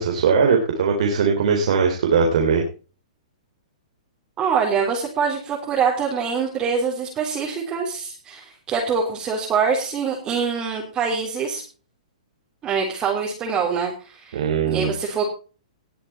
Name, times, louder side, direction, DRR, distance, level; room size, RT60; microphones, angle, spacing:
voice 1, 0.0-2.6 14.3-14.9, right 5 dB, 65° right, 2 dB, 3.7 m, -20 dB
voice 2, 4.4-11.6 12.6-14.4 14.7-15.3, right 6 dB, 20° right, -2 dB, 3.8 m, -24 dB
19.5 x 7.9 x 4.5 m, 0.36 s
hypercardioid pair, 140°, 4 cm